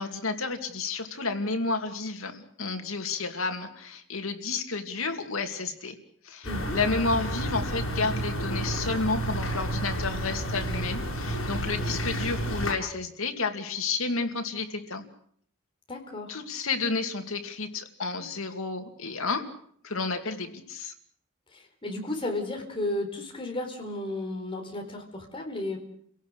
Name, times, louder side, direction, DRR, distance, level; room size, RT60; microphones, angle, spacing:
voice 1, 0.0-6.0 6.2-6.5 6.7-15.0 16.3-19.5 19.8-20.9, left 3 dB, 90° left, 6 dB, 2.5 m, -31 dB
sound 1, 6.4-12.7, equal, 70° left, 6.6 m, -31 dB
voice 2, 6.4-6.8 11.7-12.0 15.9-16.4 21.5-25.8, left 1 dB, 25° left, 3 dB, 4.3 m, -34 dB
29.5 x 17.5 x 6.5 m, 0.62 s
head